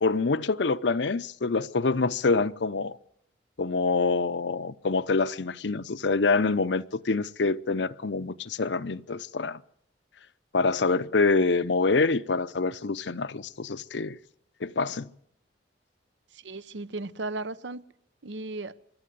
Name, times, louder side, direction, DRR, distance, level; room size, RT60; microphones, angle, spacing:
voice 1, 0.0-3.0 3.6-9.6 10.5-14.2 14.6-15.1, left 3 dB, 75° left, 0.7 m, -26 dB
voice 2, 16.3-17.9 18.2-18.8, right 2 dB, 80° right, 0.8 m, -35 dB
25.0 x 11.5 x 9.2 m
head